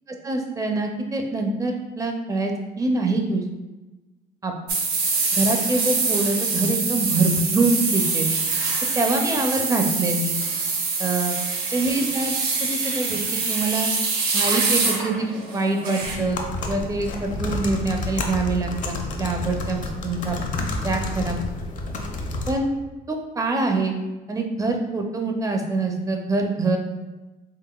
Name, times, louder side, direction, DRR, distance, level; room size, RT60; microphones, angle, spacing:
voice 1, 0.3-3.4 4.4-4.5 5.3-8.3 9.0-10.4 11.0-11.4 11.7-13.9 14.3-20.4 20.8-21.4 22.5-22.7 23.1-23.9 24.3-26.8, right 2 dB, 20° right, 3 dB, 0.5 m, -25 dB
sound 1, 4.7-16.2, right 4 dB, 65° right, 0.8 m, -25 dB
sound 2, 16.0-22.5, left 2 dB, 50° left, 0.5 m, -29 dB
3.8 x 3.4 x 2.3 m, 1.1 s
cardioid pair, 110°, 17 cm